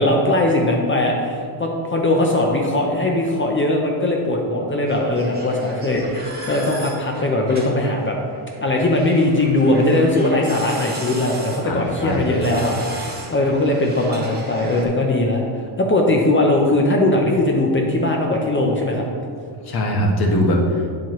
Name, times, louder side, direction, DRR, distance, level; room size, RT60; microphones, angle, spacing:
voice 1, 0.0-8.2 8.6-19.0, left 1 dB, 25° left, 0 dB, 0.7 m, -19 dB
sound 1, 4.9-14.9, right 2 dB, 20° right, 1.5 m, -37 dB
voice 2, 11.6-12.3 12.5-12.7 19.6-20.9, equal, 45° left, 1 dB, 1.3 m, -21 dB
8.9 x 7.4 x 3.1 m, 2.2 s
cardioid pair, 145°, 50 cm